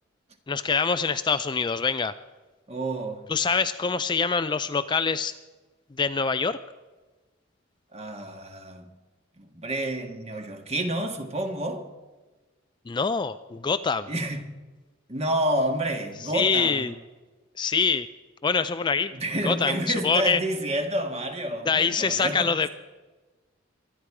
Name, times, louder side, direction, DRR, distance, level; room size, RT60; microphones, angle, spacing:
voice 1, 0.5-2.1 3.3-5.3 6.0-6.6 12.9-14.1 16.2-16.9 17.6-18.1 18.4-19.1 19.4-19.8 20.0-20.4 21.7-22.7, left 5 dB, 25° left, 0.4 m, -25 dB
voice 2, 2.7-3.2 7.9-8.9 9.4-11.9 14.1-14.4 15.1-16.9 19.1-22.5, right 1 dB, 30° right, 1.7 m, -29 dB
23.5 x 10.0 x 4.8 m
head